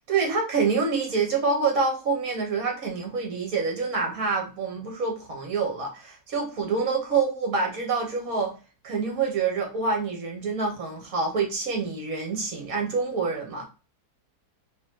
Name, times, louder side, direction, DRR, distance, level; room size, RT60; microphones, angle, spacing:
voice 1, 0.1-8.5 8.8-13.6, right 4 dB, 65° right, 1.6 m, -26 dB
4.2 x 2.6 x 2.8 m
omnidirectional pair, 1.7 m